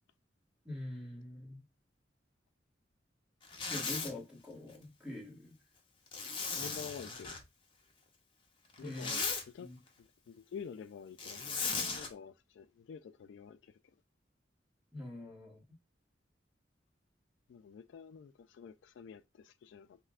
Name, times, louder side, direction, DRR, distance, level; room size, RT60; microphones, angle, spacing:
voice 1, 0.6-1.6 3.7-5.6 8.8-9.1 9.6-9.8 14.9-15.6, left 1 dB, 5° right, 1.3 m, -44 dB
Zipper (clothing), 3.4-4.1 6.1-7.4 8.7-9.4 11.2-12.1, left 4 dB, 30° left, 0.7 m, -37 dB
voice 2, 6.6-7.4 8.8-9.7 10.3-13.7 17.5-20.0, left 7 dB, 80° left, 0.3 m, -49 dB
5.4 x 2.1 x 2.4 m
head